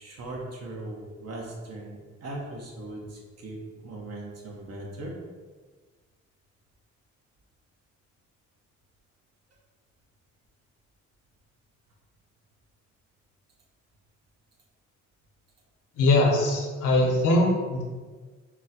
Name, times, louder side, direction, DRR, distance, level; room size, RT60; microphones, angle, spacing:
voice 1, 0.0-5.2, right 2 dB, 55° right, -1 dB, 1.1 m, -39 dB
voice 2, 16.0-17.8, left 2 dB, 90° left, -1 dB, 0.9 m, -22 dB
4.3 x 2.2 x 4.2 m, 1.4 s
cardioid pair, 90°, 30 cm